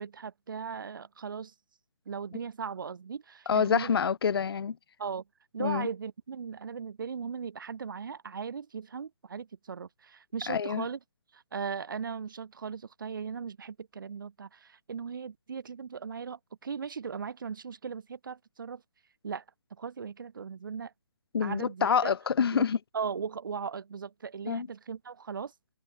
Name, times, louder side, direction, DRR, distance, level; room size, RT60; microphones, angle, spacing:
voice 1, 0.0-1.5 2.1-3.9 5.0-5.2 5.5-11.0 11.3-18.8 19.2-19.4 19.8-20.9 21.4-22.1 22.5-25.5, right 6 dB, 55° right, 2.0 m, -38 dB
voice 2, 3.5-4.7 5.6-5.9 10.5-10.8 21.3-22.8 24.5-24.7, left 6 dB, 70° left, 0.5 m, -27 dB
hypercardioid pair, 170°, 13 cm